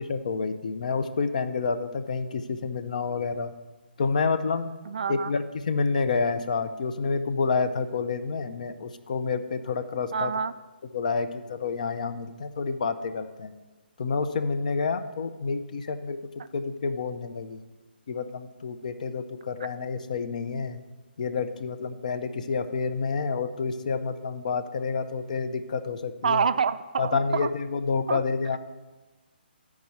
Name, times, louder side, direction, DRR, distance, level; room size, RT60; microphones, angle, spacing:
voice 1, 0.0-3.5 4.0-4.7 5.1-10.3 10.9-13.5 14.0-16.2 16.5-17.6 18.1-20.8 21.2-26.4 27.0-28.6, left 4 dB, 45° left, 10 dB, 0.5 m, -29 dB
voice 2, 4.9-5.3 10.1-10.5 26.2-27.5 28.1-28.2, right 6 dB, 50° right, 13 dB, 0.3 m, -27 dB
12.5 x 4.8 x 4.2 m, 1.2 s
figure-of-eight pair, 135°, 6 cm